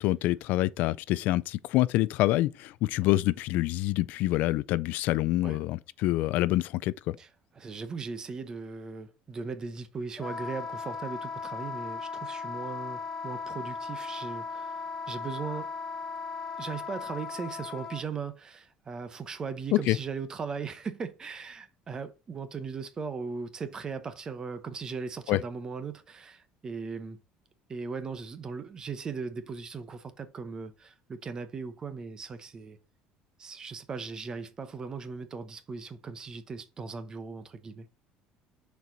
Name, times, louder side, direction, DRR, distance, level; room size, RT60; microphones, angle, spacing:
voice 1, 0.0-7.2 19.7-20.0 25.3-25.4, left 17 dB, 60° left, 0.3 m, -26 dB
voice 2, 7.6-15.7 16.6-27.2 27.7-32.8 33.4-37.9, right 5 dB, 25° right, 0.8 m, -38 dB
Wind instrument woodwind instrument, 10.2-18.0, left 4 dB, 20° left, 1.0 m, -37 dB
6.6 x 4.6 x 3.9 m
cardioid pair, 160°, 3 cm